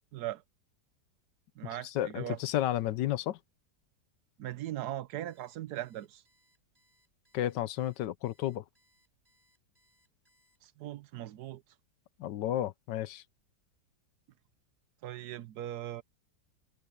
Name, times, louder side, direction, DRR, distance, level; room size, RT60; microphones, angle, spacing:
voice 1, 0.1-0.4 1.6-2.4 4.4-6.2 10.6-11.6 15.0-16.0, right 13 dB, 70° right, 1.2 m, -39 dB
voice 2, 1.8-3.4 7.3-8.6 12.2-13.2, left 13 dB, 85° left, 1.4 m, -32 dB
Alarm, 5.3-10.9, equal, 10° right, 6.6 m, -72 dB
omnidirectional pair, 1.8 m